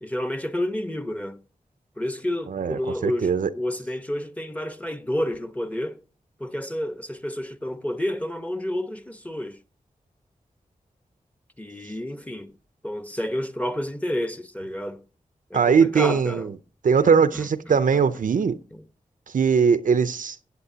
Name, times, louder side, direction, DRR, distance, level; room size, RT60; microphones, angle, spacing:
voice 1, 0.0-1.4 2.0-6.0 6.4-9.6 11.6-12.5 12.8-15.0 15.5-16.5 16.9-18.0 18.7-18.8, left 1 dB, 10° left, 1.0 m, -30 dB
voice 2, 2.5-3.5 15.5-16.5 16.8-18.6 19.3-20.4, right 6 dB, 75° right, 0.6 m, -20 dB
16.5 x 8.0 x 2.8 m
cardioid pair, 50°, 14 cm